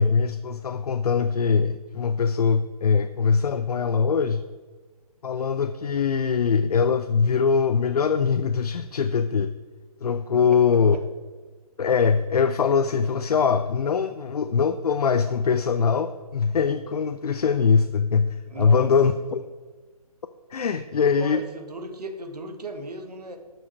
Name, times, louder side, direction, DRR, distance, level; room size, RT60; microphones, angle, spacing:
voice 1, 0.0-4.4 5.2-9.5 10.0-11.0 11.8-19.5 20.5-21.4, left 6 dB, 70° left, 9 dB, 0.6 m, -22 dB
voice 2, 18.4-18.9 21.2-23.4, right 2 dB, 85° right, 5 dB, 1.6 m, -36 dB
11.5 x 6.1 x 4.5 m, 1.4 s
hypercardioid pair, 160°, 20 cm